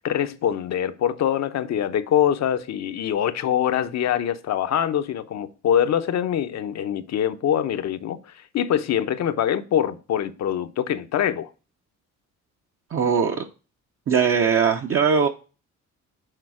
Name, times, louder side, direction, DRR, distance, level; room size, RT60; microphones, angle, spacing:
voice 1, 0.0-11.5, left 10 dB, 60° left, 0.7 m, -24 dB
voice 2, 12.9-13.4 14.1-15.3, right 6 dB, 45° right, 0.7 m, -20 dB
6.6 x 3.9 x 4.8 m
cardioid pair, 90°, 30 cm